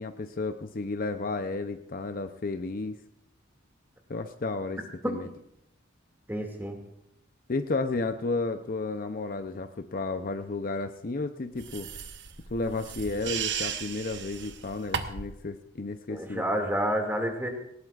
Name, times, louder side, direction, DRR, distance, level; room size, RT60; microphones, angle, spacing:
voice 1, 0.0-3.0 4.1-4.8 5.1-5.3 7.5-11.9 12.5-16.5, left 3 dB, 45° left, 8 dB, 0.6 m, -32 dB
voice 2, 6.3-6.8 16.1-17.5, equal, 10° right, 2 dB, 2.2 m, -29 dB
sound 1, 11.6-15.4, right 7 dB, 60° right, 1.0 m, -35 dB
19.5 x 18.5 x 2.5 m, 0.78 s
head